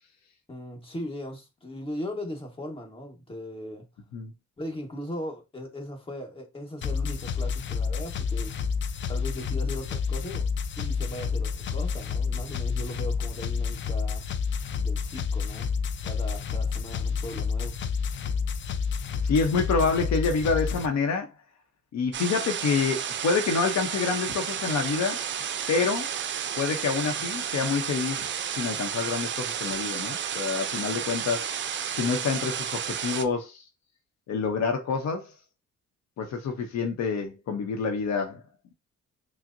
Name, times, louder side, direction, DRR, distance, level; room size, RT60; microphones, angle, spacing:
voice 1, 0.5-3.8 4.6-8.6 9.1-10.5 10.8-14.2 14.8-15.7 16.0-17.8, equal, 20° left, 1.2 m, -38 dB
sound 1, 6.8-20.9, left 5 dB, 40° left, 0.4 m, -29 dB
voice 2, 19.2-21.3 21.9-25.2 25.7-26.1 26.6-31.5 31.9-33.6 34.3-35.3 36.2-38.4, left 5 dB, 65° left, 0.7 m, -27 dB
sound 2, 22.1-33.2, right 8 dB, 40° right, 0.4 m, -32 dB
5.9 x 2.1 x 2.5 m
cardioid pair, 90°, 30 cm